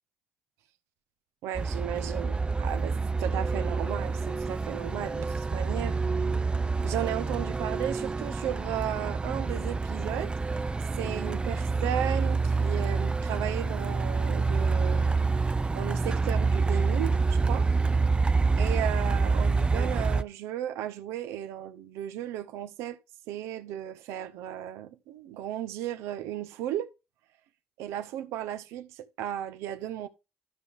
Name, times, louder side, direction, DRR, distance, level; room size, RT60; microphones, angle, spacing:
voice 1, 1.4-6.0 6.8-10.3 11.0-15.2 15.7-17.7 18.6-23.0 23.3-26.9 27.8-30.1, right 11 dB, 80° right, 0.7 m, -35 dB
Truck, 1.6-20.2, right 4 dB, 20° right, 0.5 m, -27 dB
12.0 x 5.4 x 3.5 m
hypercardioid pair, 50°, 5 cm